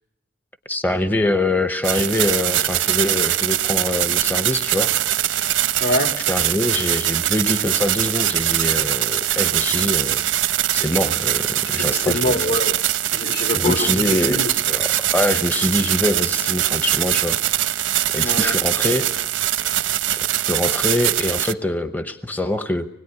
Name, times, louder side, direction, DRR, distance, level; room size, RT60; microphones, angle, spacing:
voice 1, 0.7-4.9 6.3-10.3 10.7-12.4 13.5-17.4 18.1-19.1 20.1-22.9, left 1 dB, 10° left, 9 dB, 0.9 m, -24 dB
sound 1, 1.8-21.5, right 12 dB, 85° right, 1.1 m, -22 dB
voice 2, 5.8-6.1 11.8-12.8 13.1-14.5 18.2-18.6, left 2 dB, 55° left, 7 dB, 2.1 m, -24 dB
25.5 x 20.5 x 9.7 m, 0.86 s
head